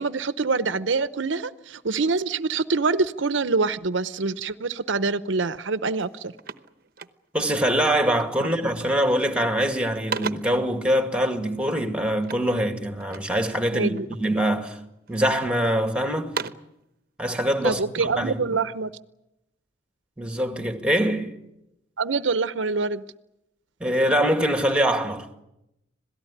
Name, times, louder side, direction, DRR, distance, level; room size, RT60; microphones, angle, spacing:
voice 1, 0.0-6.3 13.7-14.1 17.6-18.9 22.0-23.0, right 4 dB, 80° right, 0.8 m, -25 dB
sound 1, 5.5-5.7 6.0-7.5 8.2-8.5 8.8-9.3 9.7-10.7 12.2-13.4 13.9-14.6 15.1-15.7 16.1-16.8, right 5 dB, 50° right, 1.0 m, -36 dB
voice 2, 7.3-14.8 15.1-16.4 17.2-18.4 20.2-21.3 23.8-25.3, equal, 5° right, 2.0 m, -24 dB
26.5 x 18.0 x 9.9 m
head